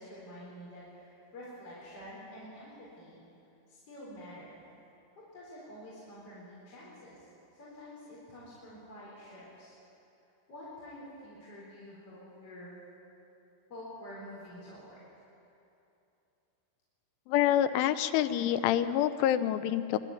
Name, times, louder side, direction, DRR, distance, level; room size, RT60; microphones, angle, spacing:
voice 1, 0.0-3.2 3.7-4.7 5.3-9.8 10.5-12.7 13.7-15.3, equal, 30° left, -7 dB, 4.7 m, -48 dB
voice 2, 17.3-20.0, left 11 dB, 80° left, 11 dB, 3.1 m, -27 dB
23.5 x 12.0 x 9.3 m, 2.8 s
omnidirectional pair, 5.6 m